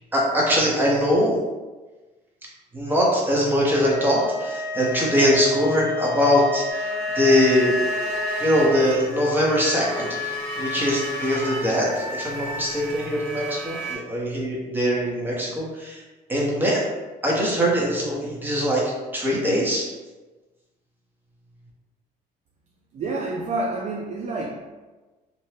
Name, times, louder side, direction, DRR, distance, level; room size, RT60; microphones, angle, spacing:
voice 1, 0.1-1.4 2.7-6.9 7.1-7.7 8.4-16.0 16.3-16.8 17.2-18.8 19.1-19.9, equal, 10° right, -4 dB, 0.8 m, -22 dB
sound 1, 3.7-8.8, left 2 dB, 40° left, 0.6 m, -30 dB
sound 2, 6.7-14.0, left 1 dB, 70° right, 1.5 m, -32 dB
voice 2, 22.9-24.6, right 2 dB, 45° right, -2 dB, 0.4 m, -28 dB
2.6 x 2.1 x 3.2 m, 1.2 s
cardioid pair, 110°, 17 cm